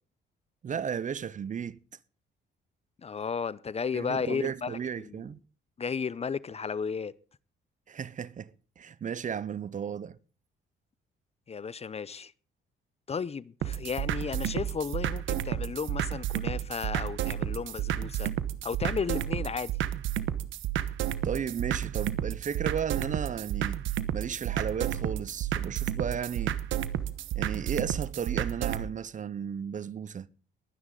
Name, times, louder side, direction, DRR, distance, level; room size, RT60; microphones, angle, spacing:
voice 1, 0.6-1.8 3.9-5.4 7.9-8.5 8.8-10.2 21.2-23.8 24.1-26.6 27.4-30.3, right 7 dB, 40° right, 0.6 m, -34 dB
voice 2, 3.0-5.2 5.8-7.1 11.5-12.3 13.1-18.3 18.6-19.7, left 6 dB, 30° left, 0.6 m, -34 dB
sound 1, 13.6-28.9, right 11 dB, 80° right, 1.0 m, -31 dB
21.0 x 9.6 x 3.8 m
cardioid pair, 90°, 20 cm